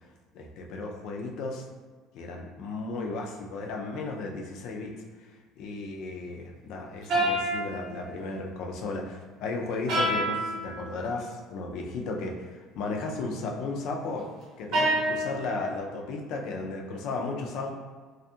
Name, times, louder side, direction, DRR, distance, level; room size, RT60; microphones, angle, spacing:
voice 1, 0.3-1.6 2.1-14.3 14.6-17.7, left 3 dB, 65° left, 1 dB, 0.4 m, -35 dB
sound 1, 7.1-8.3 9.9-10.7 14.7-15.7, right 1 dB, 60° right, 0.7 m, -27 dB
2.5 x 2.3 x 2.7 m, 1.4 s
cardioid pair, 125°, 0 cm